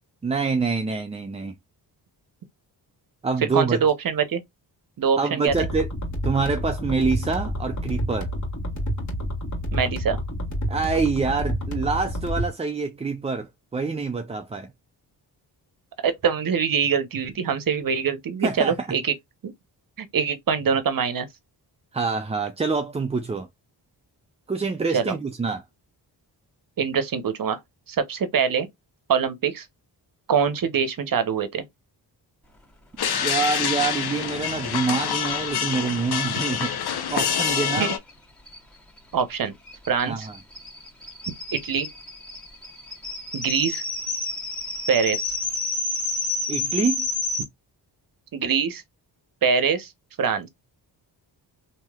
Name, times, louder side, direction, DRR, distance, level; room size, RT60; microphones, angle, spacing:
voice 1, 0.2-1.6 3.2-3.8 5.2-5.9 6.2-8.3 10.7-14.7 18.4-18.9 21.9-23.5 24.5-25.6 33.1-36.8 37.1-37.9 40.1-40.3 46.5-47.1, right 4 dB, 15° right, 0.4 m, -26 dB
voice 2, 3.4-4.4 5.0-5.5 9.7-10.2 16.0-19.1 19.4-19.5 20.0-21.3 24.9-25.2 26.8-27.6 27.9-28.7 29.1-29.7 30.3-31.7 37.8-38.0 39.1-39.5 39.9-40.3 41.3-41.9 43.3-43.8 44.9-45.3 48.3-48.8 49.4-49.9 50.2-50.5, right 6 dB, 50° right, 0.8 m, -24 dB
sound 1, 5.5-12.5, equal, 40° left, 1.7 m, -29 dB
sound 2, 33.0-38.0, left 8 dB, 60° left, 0.8 m, -26 dB
sound 3, 37.8-37.9 38.1-38.2 38.5-47.4, left 3 dB, ahead, 1.5 m, -30 dB
3.0 x 2.8 x 2.3 m
cardioid pair, 70°, 44 cm